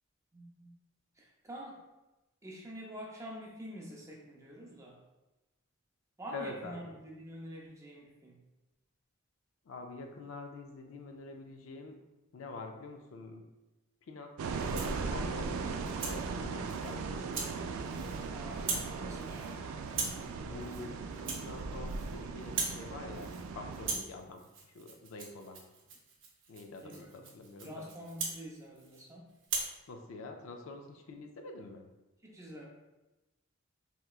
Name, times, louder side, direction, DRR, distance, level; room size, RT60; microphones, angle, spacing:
voice 1, 0.3-0.7 1.2-1.8 2.4-5.0 6.2-8.4 18.3-19.6 26.8-27.3 27.6-29.3 32.2-32.7, equal, 15° right, -2 dB, 0.5 m, -47 dB
voice 2, 6.3-6.9 9.7-11.9 12.3-13.5 14.1-14.3 14.7-15.8 16.0-17.5 20.4-24.5 24.7-25.6 26.5-27.9 29.9-31.9, left 3 dB, 70° left, 4 dB, 0.4 m, -46 dB
sound 1, 14.4-24.0, right 4 dB, 90° right, 0.3 m, -38 dB
Rattle (instrument), 14.5-15.0 15.5-16.2 16.7-16.9 17.3-17.5 17.8-18.3 18.5-18.9 19.2-19.5 19.9-20.2 20.6-20.8 21.1-22.1 22.4-22.8 23.1-23.5 23.7-29.0 29.4-29.7, right 4 dB, 60° right, 0.6 m, -40 dB
3.4 x 2.9 x 2.3 m, 1.0 s
head